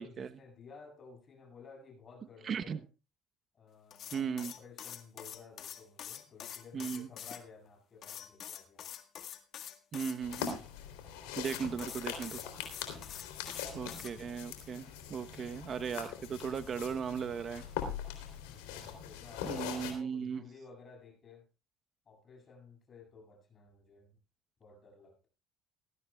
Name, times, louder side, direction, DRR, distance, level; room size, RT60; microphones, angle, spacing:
voice 1, 0.0-2.8 3.5-8.8 12.8-13.2 18.4-21.5 22.1-24.2 24.6-25.3, left 4 dB, 40° left, 4 dB, 7.7 m, -55 dB
voice 2, 2.4-2.8 4.1-4.5 6.7-7.1 9.9-10.6 11.4-12.4 13.7-17.6 19.4-20.4, right 6 dB, 45° right, 11 dB, 1.0 m, -37 dB
sound 1, 3.9-7.4 8.0-10.5 11.3-14.1, left 10 dB, 60° left, 1.9 m, -45 dB
sound 2, 10.2-19.9, left 8 dB, 90° left, 3.4 m, -42 dB
19.0 x 14.0 x 2.4 m, 0.31 s
supercardioid pair, 80°, 0 cm